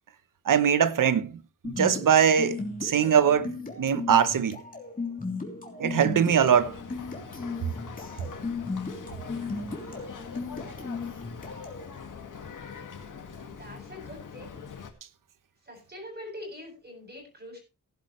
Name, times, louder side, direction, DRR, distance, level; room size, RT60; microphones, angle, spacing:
voice 1, 0.5-1.3 1.6-4.6 5.8-6.7, right 8 dB, 75° right, 1.0 m, -22 dB
sound 1, 1.6-11.9, left 3 dB, 25° left, 3.3 m, -36 dB
Boat Water vehicle, 6.3-14.9, left 6 dB, 70° left, 2.1 m, -43 dB
voice 2, 13.5-14.7 15.6-17.6, left 1 dB, 30° right, 7.8 m, -44 dB
16.5 x 11.0 x 3.2 m
wide cardioid pair, 120°, 32 cm